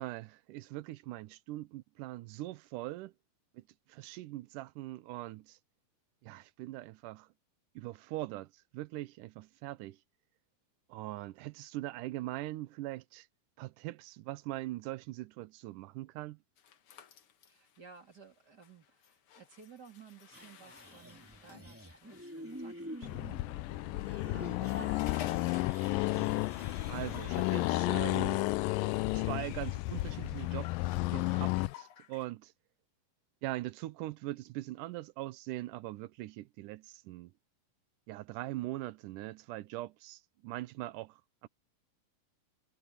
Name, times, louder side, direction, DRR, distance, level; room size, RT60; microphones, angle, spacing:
voice 1, 0.0-3.1 3.5-3.6 3.9-5.6 6.2-7.3 7.8-10.0 10.9-13.3 13.6-16.4 26.7-28.4 29.1-32.5 33.4-37.3 38.1-41.5, right 17 dB, 85° right, 1.9 m, -41 dB
sound 1, 16.6-23.2 24.2-26.6 26.9-27.4 28.3-32.3, left 10 dB, 65° left, 1.4 m, -54 dB
voice 2, 17.5-26.2, right 6 dB, 30° right, 3.2 m, -56 dB
sound 2, 20.3-27.8, equal, 5° right, 2.5 m, -48 dB
Accelerating revving vroom, 23.0-31.7, left 20 dB, 90° left, 1.9 m, -32 dB
omnidirectional pair, 4.5 m